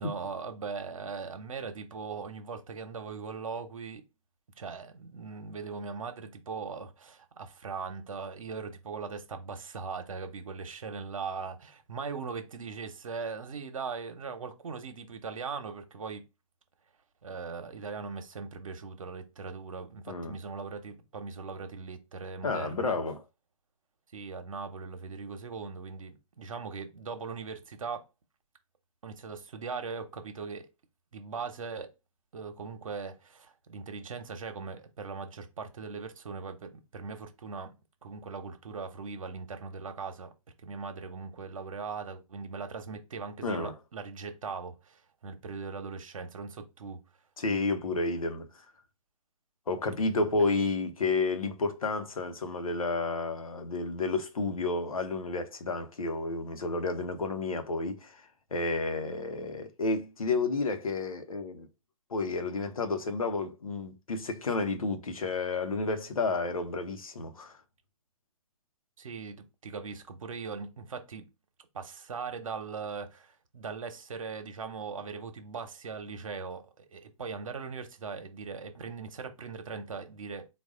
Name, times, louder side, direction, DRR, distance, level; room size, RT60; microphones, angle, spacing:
voice 1, 0.0-4.0 4.6-16.2 17.2-23.0 24.1-28.1 29.0-30.7 31.1-31.9 32.3-37.7 38.0-40.3 40.6-47.0 69.0-71.3 71.7-80.5, right 5 dB, 70° right, 1.0 m, -40 dB
voice 2, 22.4-23.2 43.4-43.7 47.4-48.5 49.7-58.2 58.5-61.7 62.1-67.5, left 3 dB, 80° left, 1.0 m, -31 dB
4.1 x 2.5 x 3.7 m
hypercardioid pair, 130°, 18 cm